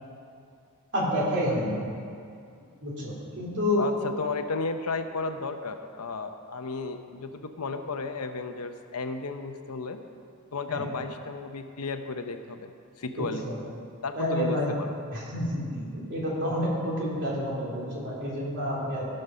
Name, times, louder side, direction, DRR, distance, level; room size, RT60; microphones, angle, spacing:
voice 1, 0.9-1.8 2.8-3.8 10.7-10.8 13.2-13.6 14.1-14.7 15.1-19.1, left 1 dB, 55° right, -5 dB, 3.0 m, -29 dB
voice 2, 3.8-10.0 10.5-12.7 13.0-13.4 14.0-14.9, left 4 dB, 85° left, 7 dB, 0.8 m, -33 dB
16.5 x 6.6 x 5.5 m, 2.4 s
head